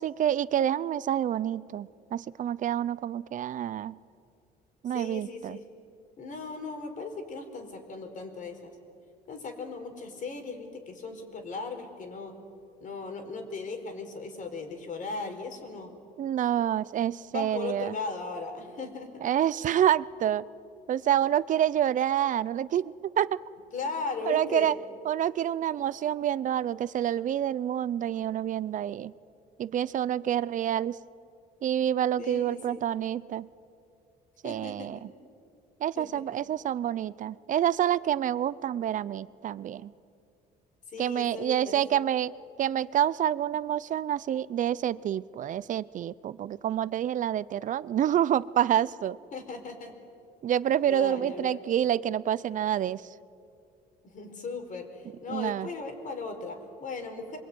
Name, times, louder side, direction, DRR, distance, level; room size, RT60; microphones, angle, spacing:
voice 1, 0.0-4.0 4.8-5.6 16.2-18.0 19.2-20.4 20.9-23.4 24.3-24.7 25.0-29.1 29.6-31.0 31.6-33.5 34.4-35.1 35.8-39.9 41.0-42.3 42.6-49.2 50.4-53.0 55.3-55.7, right 10 dB, 50° right, 19 dB, 0.7 m, -28 dB
voice 2, 4.9-5.6 6.2-8.7 9.3-12.3 12.8-15.9 17.3-19.1 23.7-24.7 32.2-32.8 34.4-34.9 36.0-36.2 40.9-41.8 49.3-49.9 50.9-51.6 54.0-57.4, left 4 dB, 50° left, 5 dB, 4.6 m, -37 dB
26.5 x 23.0 x 9.4 m, 2.5 s
cardioid pair, 110°, 17 cm